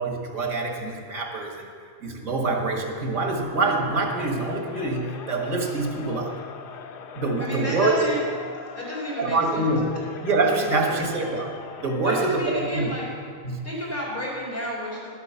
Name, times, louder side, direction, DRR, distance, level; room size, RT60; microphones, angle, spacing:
voice 1, 0.0-1.7 2.0-6.4 7.1-8.0 9.2-9.9 10.2-12.9 13.4-13.6, right 3 dB, 80° right, 2 dB, 2.0 m, -25 dB
Crowd, 4.1-12.2, left 6 dB, 60° left, 0.6 m, -41 dB
voice 2, 7.4-8.2 8.7-9.6 10.9-11.0 12.0-13.1 13.6-15.1, equal, 40° left, -7 dB, 4.5 m, -30 dB
12.0 x 8.2 x 6.9 m, 2.1 s
omnidirectional pair, 1.4 m